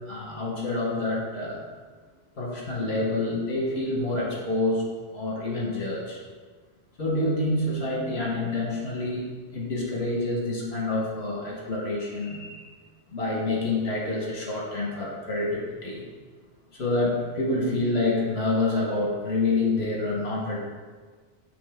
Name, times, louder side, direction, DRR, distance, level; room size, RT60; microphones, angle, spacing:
voice 1, 0.1-1.6 2.3-4.8 5.1-6.2 7.0-9.2 9.5-12.7 13.1-16.0 16.7-20.6, left 2 dB, 65° left, -3 dB, 1.4 m, -27 dB
8.6 x 3.5 x 3.5 m, 1.5 s
omnidirectional pair, 1.2 m